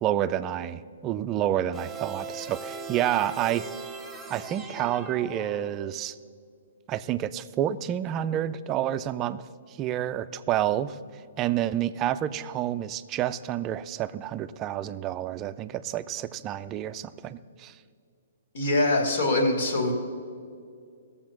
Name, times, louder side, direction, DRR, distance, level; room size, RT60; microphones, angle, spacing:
voice 1, 0.0-3.7 4.3-6.1 6.9-9.4 9.8-11.0 11.4-17.7, right 11 dB, 25° right, 13 dB, 0.4 m, -29 dB
sound 1, 1.7-6.1, right 4 dB, 5° right, 1.1 m, -39 dB
voice 2, 18.5-19.9, left 2 dB, 65° left, 3 dB, 2.6 m, -23 dB
16.0 x 7.1 x 6.0 m, 2.2 s
hypercardioid pair, 140°, 0 cm